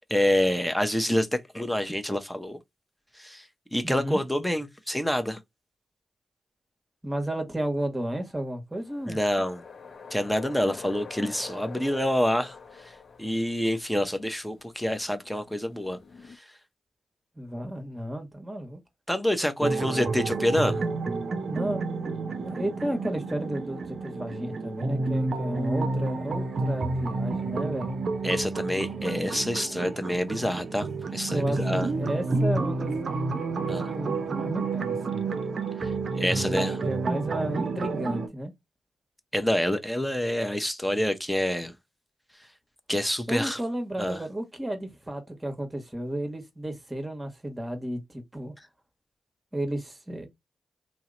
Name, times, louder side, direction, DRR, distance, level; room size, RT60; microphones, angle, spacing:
voice 1, 0.1-1.3 1.5-2.6 3.2-3.4 3.7-5.4 9.1-9.6 10.1-12.6 12.8-12.9 13.2-16.0 19.1-20.8 28.2-30.9 31.1-31.9 33.7-33.9 36.2-36.8 39.3-41.7 42.9-43.6 44.0-44.2, left 1 dB, 5° left, 0.7 m, -27 dB
voice 2, 3.8-4.2 7.0-9.2 17.4-18.8 21.5-21.8 22.4-27.9 31.3-32.9 33.9-35.4 36.3-38.5 43.3-48.5 49.5-50.3, right 1 dB, 20° right, 1.2 m, -33 dB
sound 1, 8.8-16.4, left 5 dB, 55° left, 0.6 m, -46 dB
sound 2, 19.6-38.3, right 3 dB, 60° right, 0.5 m, -30 dB
2.8 x 2.1 x 3.7 m
supercardioid pair, 40°, 0 cm